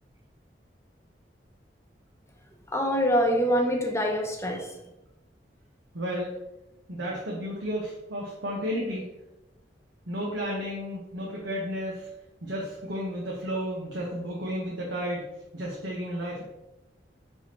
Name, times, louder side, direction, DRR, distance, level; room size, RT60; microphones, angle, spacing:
voice 1, 2.7-4.8, equal, 15° left, 2 dB, 0.6 m, -25 dB
voice 2, 5.9-6.3 6.9-9.0 10.1-12.1 12.4-16.4, equal, 85° right, -4 dB, 1.3 m, -32 dB
9.0 x 4.0 x 3.0 m, 0.93 s
head